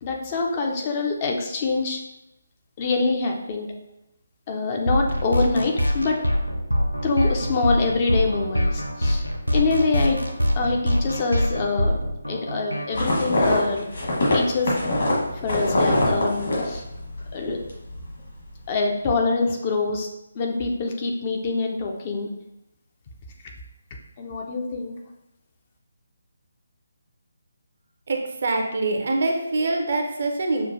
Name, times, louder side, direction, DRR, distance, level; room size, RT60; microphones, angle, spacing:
voice 1, 0.0-2.0 2.8-3.7 4.5-6.2 7.0-9.2 9.5-10.2 10.6-12.0 12.3-13.9 14.3-14.7 15.3-16.8 17.3-17.6 18.7-20.1 20.3-22.3 24.2-25.0, left 3 dB, 25° left, 1 dB, 0.5 m, -25 dB
sound 1, 4.9-13.3, equal, 90° left, 0.5 m, -24 dB
sound 2, 13.0-17.3 17.6-18.1, left 1 dB, 55° left, 1.4 m, -23 dB
voice 2, 28.1-30.7, right 2 dB, 45° right, 2 dB, 0.6 m, -24 dB
6.3 x 2.4 x 2.6 m, 0.87 s
figure-of-eight pair, 145°, 0 cm